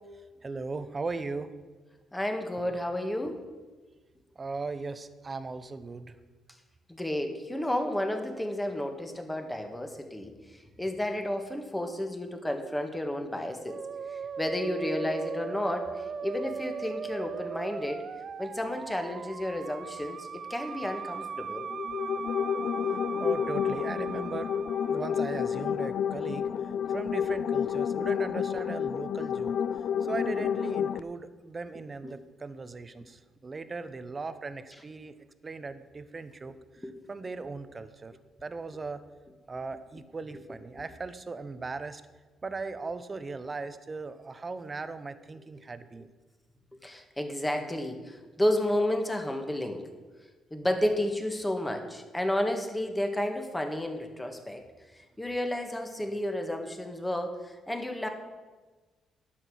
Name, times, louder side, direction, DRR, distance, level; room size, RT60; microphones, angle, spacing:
voice 1, 0.4-1.5 4.4-6.1 23.2-24.5 24.9-26.5 26.9-29.6 30.0-35.2 35.4-36.6 37.1-38.1 38.4-39.0 39.5-42.0 42.4-46.1, right 3 dB, 30° right, 12 dB, 0.8 m, -38 dB
voice 2, 2.1-3.4 6.9-10.3 10.8-13.8 14.1-18.0 18.4-21.7 32.0-32.2 36.8-36.9 46.8-49.9 50.5-54.6 55.2-58.1, left 1 dB, 10° left, 4 dB, 1.7 m, -31 dB
Musical instrument, 13.7-25.4, right 6 dB, 50° right, 0.3 m, -39 dB
sound 1, 21.6-31.0, left 8 dB, 70° left, 0.4 m, -30 dB
11.0 x 7.5 x 6.3 m, 1.3 s
cardioid pair, 90°, 0 cm